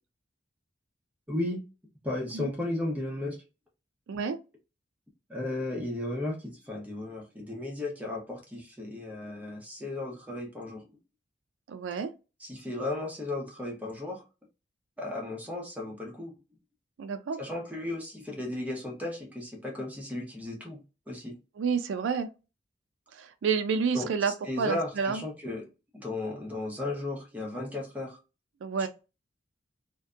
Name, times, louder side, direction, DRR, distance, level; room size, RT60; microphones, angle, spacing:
voice 1, 1.3-1.6 2.0-3.4 5.3-11.0 12.4-14.2 15.0-16.4 17.4-21.3 23.9-24.1 24.5-25.7 25.9-28.2 28.8-28.9, left 2 dB, 10° right, 0.7 m, -35 dB
voice 2, 4.1-4.4 11.7-12.1 17.0-17.4 21.6-22.3 23.1-25.2 28.6-28.9, right 5 dB, 70° right, 0.3 m, -29 dB
2.6 x 2.1 x 2.4 m
head